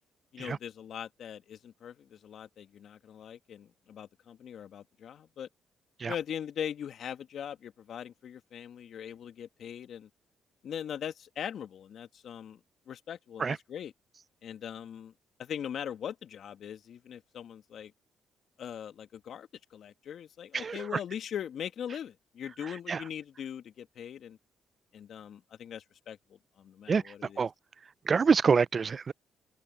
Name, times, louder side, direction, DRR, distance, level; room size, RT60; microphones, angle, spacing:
voice 1, 0.3-5.5 6.1-10.1 10.6-12.6 12.9-13.9 14.4-15.1 15.4-17.9 18.6-24.4 24.9-26.2 26.6-27.5, left 9 dB, 65° left, 2.3 m, -41 dB
voice 2, 22.6-23.0 26.9-27.5 28.1-29.1, right 5 dB, 45° right, 0.6 m, -27 dB
open air
supercardioid pair, 55°, 0 cm